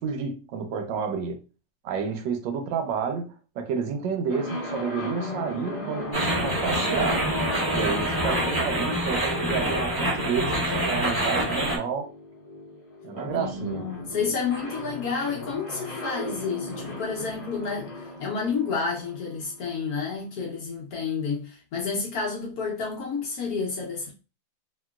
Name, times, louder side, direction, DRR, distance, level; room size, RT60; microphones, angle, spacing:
voice 1, 0.0-1.4 1.8-7.3 7.7-12.1 13.0-13.8, right 6 dB, 80° right, 1.3 m, -30 dB
sound 1, 4.3-20.1, left 1 dB, 40° left, 0.4 m, -37 dB
sound 2, 6.1-11.8, right 1 dB, 10° right, 1.6 m, -26 dB
voice 2, 13.3-24.1, left 5 dB, 65° left, 1.0 m, -30 dB
2.9 x 2.9 x 2.3 m
omnidirectional pair, 2.1 m